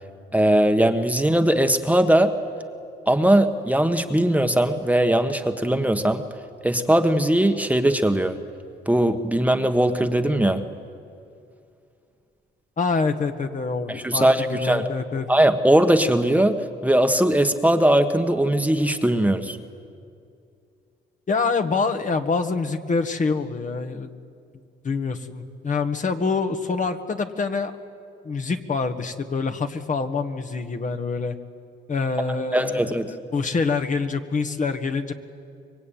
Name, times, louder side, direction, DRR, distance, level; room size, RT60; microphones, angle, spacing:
voice 1, 0.3-2.3 3.1-6.2 6.6-8.4 8.9-10.6 13.9-14.9 15.3-16.6 16.8-19.6 32.5-33.1, right 1 dB, 5° right, 6 dB, 1.4 m, -20 dB
voice 2, 12.8-15.3 21.3-24.1 24.8-27.8 28.2-31.4 31.9-35.1, left 4 dB, 40° left, 6 dB, 1.6 m, -26 dB
25.5 x 22.5 x 9.3 m, 2.4 s
cardioid pair, 90°, 20 cm